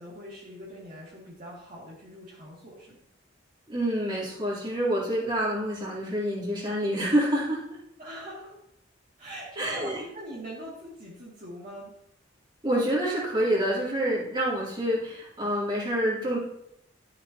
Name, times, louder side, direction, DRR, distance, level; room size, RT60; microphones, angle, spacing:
voice 1, 0.0-3.0 8.0-8.5 9.2-11.9, equal, 45° right, -7 dB, 2.3 m, -42 dB
voice 2, 3.7-7.8 9.6-10.0 12.6-16.4, equal, 25° right, -6 dB, 3.3 m, -27 dB
13.0 x 7.4 x 2.9 m, 0.76 s
head